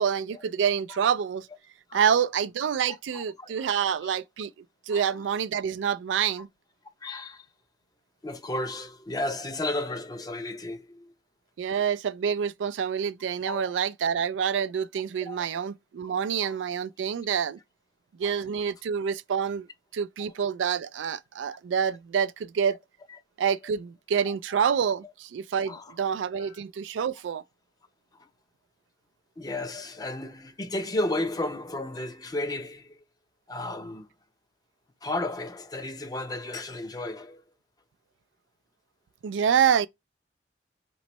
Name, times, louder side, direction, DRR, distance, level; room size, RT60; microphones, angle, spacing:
voice 1, 0.0-1.5 1.9-4.5 4.9-6.5 11.6-17.6 18.2-19.7 19.9-22.8 23.4-27.4 39.2-39.9, right 7 dB, 85° right, 0.3 m, -27 dB
voice 2, 3.1-3.8 4.9-5.0 7.0-7.5 8.2-11.1 13.4-13.7 15.2-15.5 16.4-16.5 18.2-18.4 23.5-23.6 24.3-24.4 25.7-25.9 26.3-26.6 28.1-28.3 29.4-33.0 33.5-34.1 35.0-37.4, left 2 dB, 20° left, 0.5 m, -33 dB
5.1 x 3.1 x 3.0 m
head